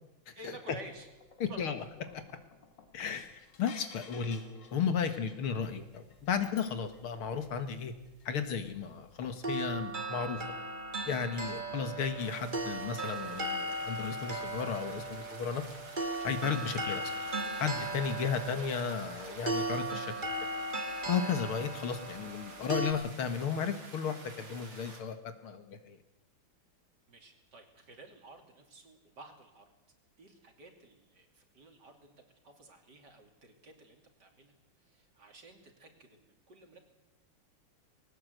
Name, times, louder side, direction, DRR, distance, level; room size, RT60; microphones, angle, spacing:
voice 1, 0.3-1.1 1.5-1.6 18.4-18.6 21.9-22.1 27.1-29.7 30.2-32.1 32.4-36.8, right 2 dB, 50° right, 4 dB, 3.3 m, -53 dB
sound 1, 0.6-9.0 9.2-9.4, left 5 dB, 55° left, 2.2 m, -56 dB
voice 2, 1.4-1.8 2.9-7.9 8.3-10.4 11.1-15.6 16.2-17.1 17.6-20.1 21.1-25.2 25.4-26.0, left 6 dB, 75° left, 9 dB, 2.4 m, -34 dB
sound 2, 9.4-22.9, right 2 dB, 25° right, 1.9 m, -37 dB
sound 3, 12.2-25.0, right 3 dB, 75° right, 4.1 m, -50 dB
20.0 x 18.5 x 8.0 m, 0.94 s
omnidirectional pair, 2.4 m